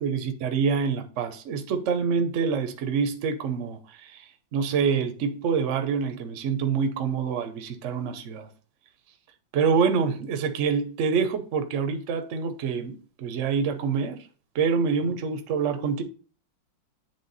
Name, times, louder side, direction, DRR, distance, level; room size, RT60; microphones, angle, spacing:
voice 1, 0.0-4.2 4.5-8.5 9.5-14.3 14.5-16.0, right 6 dB, 55° right, 0.9 m, -26 dB
8.6 x 3.4 x 4.0 m
omnidirectional pair, 2.1 m